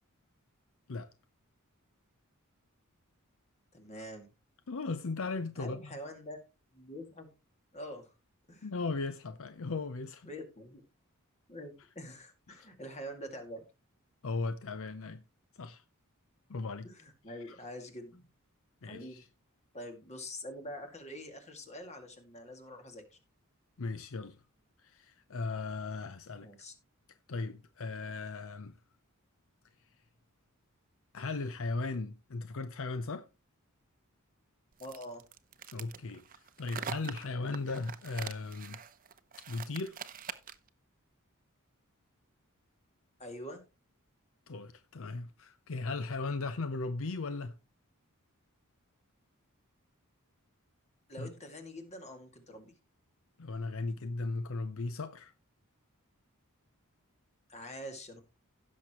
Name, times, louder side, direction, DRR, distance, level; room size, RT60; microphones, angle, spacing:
voice 1, 3.7-4.3 5.6-6.4 6.7-7.3 7.7-8.1 8.5-8.7 10.2-10.8 11.5-13.6 16.8-18.3 18.8-19.2 19.7-23.2 26.4-26.7 34.8-35.2 43.2-43.6 51.1-52.8 57.5-58.2, equal, 30° left, 2.2 m, -45 dB
voice 2, 4.7-5.8 8.6-10.3 12.5-12.7 14.2-15.2 15.6-15.8 16.5-16.9 18.8-19.2 23.8-24.4 24.8-26.5 27.3-28.8 31.1-33.3 35.7-38.8 39.5-40.0 44.5-47.6 51.2-51.3 53.4-55.3, left 3 dB, 65° left, 0.6 m, -37 dB
sound 1, 34.8-40.7, right 7 dB, 40° right, 0.8 m, -44 dB
16.5 x 6.5 x 3.0 m
head